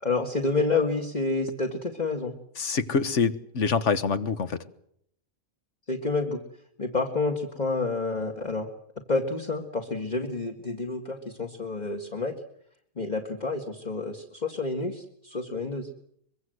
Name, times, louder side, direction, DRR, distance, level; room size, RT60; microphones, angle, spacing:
voice 1, 0.0-2.3 5.9-6.4 6.8-8.7 9.1-12.3 13.0-15.9, left 3 dB, 30° left, 2 dB, 2.0 m, -29 dB
voice 2, 2.6-4.6, left 5 dB, 60° left, 13 dB, 1.6 m, -25 dB
24.0 x 22.5 x 7.9 m, 0.69 s
omnidirectional pair, 1.4 m